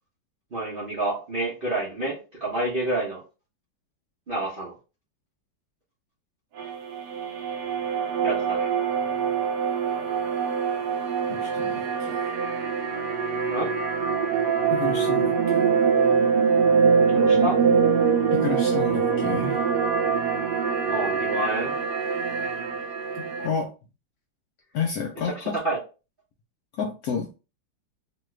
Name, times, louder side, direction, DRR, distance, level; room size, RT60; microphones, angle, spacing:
voice 1, 0.5-3.2 4.3-4.7 8.2-8.7 13.5-13.7 17.1-17.6 20.9-21.7 25.3-25.8, right 1 dB, 45° right, 0.8 m, -28 dB
sound 1, 6.6-23.5, right 6 dB, 70° right, 1.0 m, -24 dB
voice 2, 11.3-12.2 14.7-15.7 17.1-17.2 18.3-19.7 23.1-23.7 24.7-25.6 26.8-27.4, left 6 dB, 70° left, 0.9 m, -31 dB
3.2 x 2.3 x 3.1 m
omnidirectional pair, 2.1 m